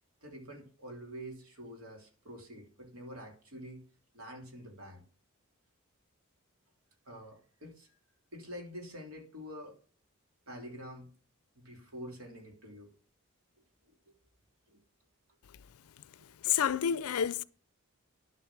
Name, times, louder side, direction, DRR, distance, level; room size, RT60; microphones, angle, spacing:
voice 1, 0.2-3.8 4.1-5.0 7.1-7.9 8.3-9.8 10.5-11.1 11.5-12.9 13.8-14.2 14.7-14.8 16.2-16.6, equal, 70° right, 3.0 m, -47 dB
voice 2, 16.4-17.4, left 9 dB, 80° left, 0.4 m, -29 dB
11.0 x 7.2 x 5.9 m
head